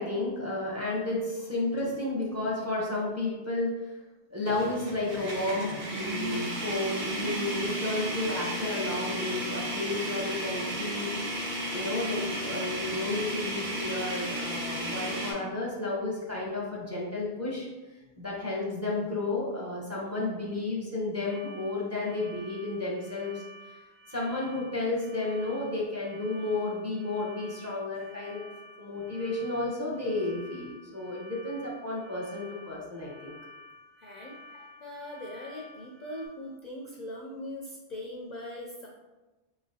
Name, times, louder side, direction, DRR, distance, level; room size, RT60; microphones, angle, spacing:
voice 1, 0.0-3.9 4.3-11.2 11.7-17.7 18.2-23.4 24.1-28.5 28.8-33.3, left 2 dB, 20° right, -4 dB, 0.6 m, -32 dB
sound 1, 1.7-1.9 2.4-2.5 4.5-15.3, right 1 dB, 70° right, 1.3 m, -33 dB
sound 2, 21.2-36.3, left 1 dB, 45° right, 1.1 m, -51 dB
voice 2, 34.0-34.4 34.8-38.9, left 1 dB, 55° left, -1 dB, 0.5 m, -40 dB
3.9 x 3.6 x 2.7 m, 1.1 s
omnidirectional pair, 1.1 m